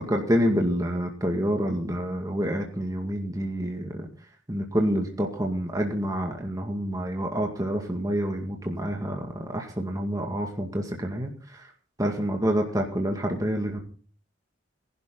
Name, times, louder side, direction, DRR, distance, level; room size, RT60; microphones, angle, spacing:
voice 1, 0.0-4.1 4.5-11.7 12.0-13.8, equal, 20° right, 1 dB, 2.1 m, -27 dB
20.5 x 11.5 x 3.9 m, 0.42 s
head